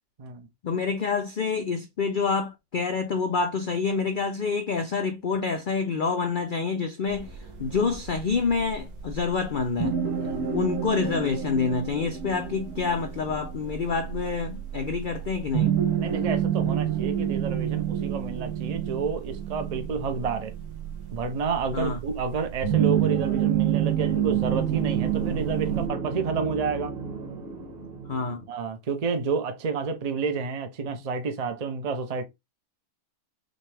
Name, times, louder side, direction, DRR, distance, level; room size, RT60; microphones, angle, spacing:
voice 1, 0.6-10.0 10.5-15.7 21.7-22.0 28.1-28.5, left 5 dB, 75° left, 0.4 m, -27 dB
sound 1, 7.1-25.9, right 10 dB, 80° right, 1.5 m, -29 dB
voice 2, 16.0-20.5 21.1-26.9 28.5-32.2, right 5 dB, 50° right, 0.4 m, -30 dB
sound 2, 23.6-28.5, right 4 dB, 30° right, 1.1 m, -36 dB
6.3 x 2.2 x 3.2 m
omnidirectional pair, 1.6 m